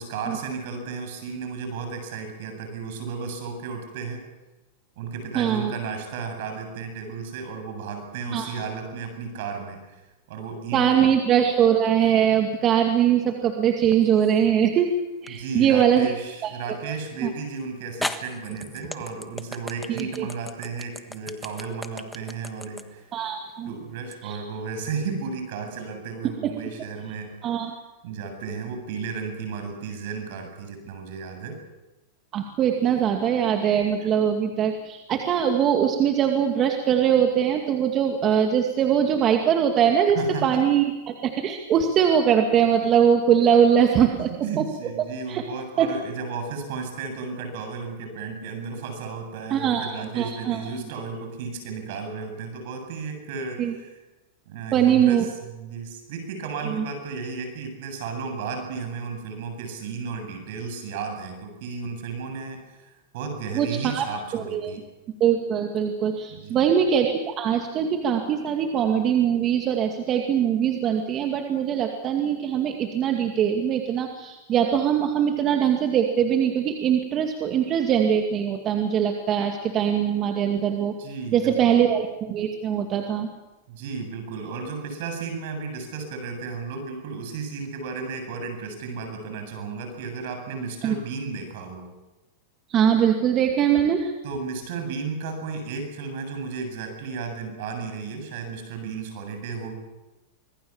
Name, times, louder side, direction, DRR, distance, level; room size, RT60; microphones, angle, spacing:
voice 1, 0.0-4.2 5.0-10.0 10.3-11.1 15.3-23.1 23.7-27.3 28.0-31.6 34.0-34.1 40.1-40.6 44.1-54.0 54.5-62.6 62.9-64.8 66.3-66.7 81.0-81.8 83.7-91.9 94.2-99.8, right 5 dB, 65° right, 6 dB, 7.9 m, -34 dB
voice 2, 5.3-5.7 8.3-8.5 10.7-15.0 15.2-16.1 16.4-16.5 17.2-17.3 19.9-20.3 23.1-23.7 24.2-24.4 26.4-26.5 27.4-27.7 32.3-40.2 40.4-44.7 45.3-45.4 45.8-45.9 49.5-50.6 53.6-53.7 54.7-55.3 56.6-56.8 63.5-64.1 64.3-64.7 65.2-81.0 81.3-83.3 90.8-91.0 92.7-94.1, right 8 dB, 35° right, 4 dB, 2.3 m, -22 dB
sound 1, 13.9-14.5 15.3-15.4 17.2-17.3 18.0-24.2, left 1 dB, 5° left, 1.5 m, -36 dB
25.5 x 20.5 x 7.3 m, 1.1 s
hypercardioid pair, 115°, 0 cm